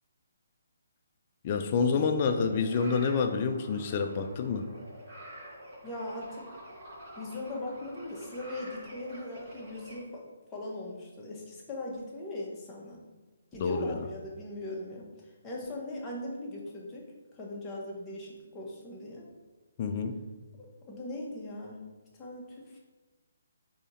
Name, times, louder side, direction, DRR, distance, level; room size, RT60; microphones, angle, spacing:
voice 1, 1.4-4.7 13.6-13.9 19.8-20.2, left 5 dB, 35° left, 6 dB, 0.4 m, -28 dB
sound 1, 2.0-10.0, equal, 45° right, 1.2 m, -48 dB
voice 2, 5.8-6.4 7.2-13.0 13.5-15.1 15.4-17.1 17.3-19.2 20.6-21.8 22.2-22.8, left 1 dB, 15° left, -4 dB, 0.9 m, -39 dB
4.8 x 2.8 x 2.7 m, 1.2 s
figure-of-eight pair, 140°, 0 cm